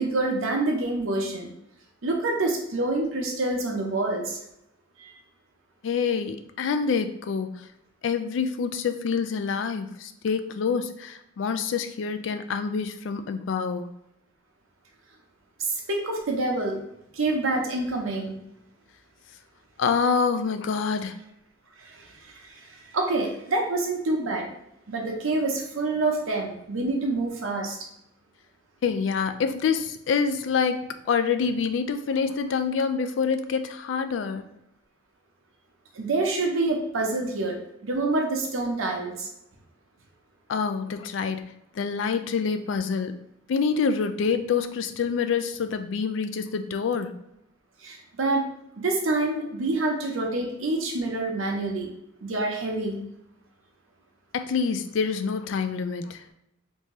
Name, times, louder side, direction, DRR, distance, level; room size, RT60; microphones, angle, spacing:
voice 1, 0.0-1.5 2.0-4.4 5.0-5.1 15.6-16.8 17.1-18.4 21.8-22.1 22.4-24.5 24.9-27.8 35.9-39.3 47.8-48.5 48.8-51.9 52.2-53.0, right 2 dB, 90° right, 1 dB, 0.8 m, -27 dB
voice 2, 5.8-7.7 8.0-13.9 19.8-21.2 28.8-34.5 40.5-43.2 43.5-47.1 54.3-56.2, left 5 dB, 70° left, 9 dB, 0.3 m, -26 dB
3.6 x 2.7 x 3.0 m, 0.81 s
head